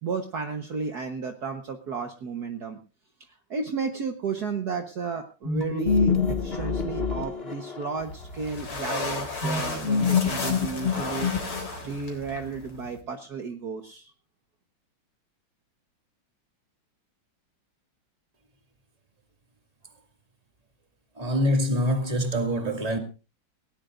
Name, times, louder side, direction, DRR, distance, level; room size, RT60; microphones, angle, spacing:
voice 1, 0.0-2.8 3.2-11.3 11.8-14.1, right 5 dB, 55° right, 1.7 m, -33 dB
sound 1, 5.4-8.0 9.4-11.9, left 5 dB, 30° left, 2.2 m, -26 dB
sound 2, 8.0-13.0, left 3 dB, 90° left, 4.6 m, -34 dB
voice 2, 21.2-23.0, equal, 20° right, 2.3 m, -25 dB
19.5 x 17.5 x 2.6 m
omnidirectional pair, 2.2 m